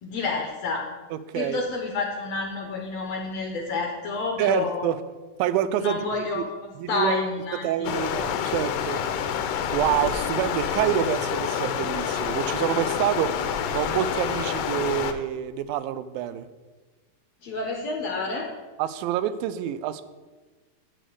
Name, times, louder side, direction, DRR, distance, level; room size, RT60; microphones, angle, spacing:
voice 1, 0.0-0.9 1.3-4.9 5.8-7.9 17.4-18.5, left 3 dB, 65° left, 2 dB, 1.8 m, -29 dB
voice 2, 1.1-1.7 4.4-5.0 5.4-6.5 6.8-7.2 7.6-9.0 9.7-16.5 18.8-20.0, right 11 dB, 90° right, 13 dB, 2.3 m, -27 dB
Stream, 7.8-15.1, left 8 dB, 90° left, 2.5 m, -28 dB
7.9 x 6.5 x 7.8 m, 1.3 s
omnidirectional pair, 4.0 m